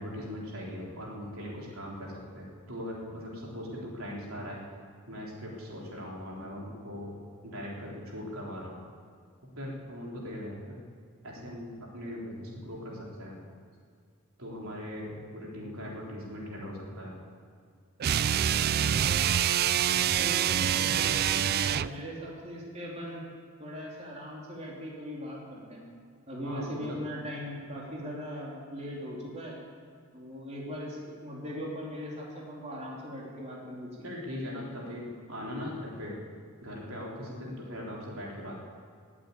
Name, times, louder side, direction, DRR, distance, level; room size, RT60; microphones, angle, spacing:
voice 1, 0.0-4.6 5.1-7.2 7.4-8.8 9.5-10.8 11.2-13.4 14.4-17.2 26.4-27.0 34.0-36.2 36.6-38.6, left 1 dB, 75° right, -3 dB, 3.7 m, -40 dB
sound 1, 18.0-22.0, right 9 dB, 45° right, 0.3 m, -26 dB
voice 2, 19.9-23.2 23.6-25.9 26.3-29.6 30.1-34.1, equal, 30° right, -4 dB, 3.4 m, -40 dB
19.5 x 8.6 x 8.5 m, 2.2 s
head